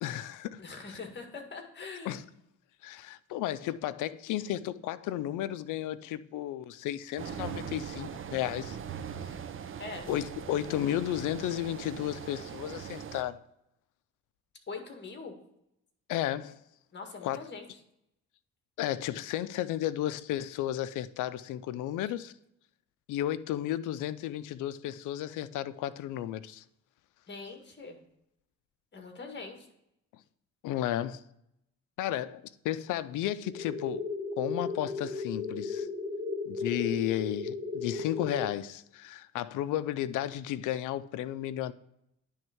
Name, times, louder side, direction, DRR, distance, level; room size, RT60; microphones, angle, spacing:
voice 1, 0.0-1.0 2.1-2.2 2.8-8.8 10.1-13.4 16.1-16.6 17.2-17.4 18.8-22.3 23.1-26.6 30.6-31.2 32.0-34.1 34.4-35.9 36.5-41.7, left 12 dB, 85° left, 0.5 m, -33 dB
voice 2, 0.6-2.2 9.8-10.1 14.7-15.3 16.9-17.7 27.3-28.0 28.9-29.7, left 4 dB, 35° left, 1.9 m, -42 dB
sound 1, 7.2-13.2, right 8 dB, 45° right, 0.6 m, -41 dB
sound 2, 33.5-38.5, left 3 dB, 20° right, 2.6 m, -36 dB
10.5 x 3.6 x 4.4 m
cardioid pair, 90°, 30 cm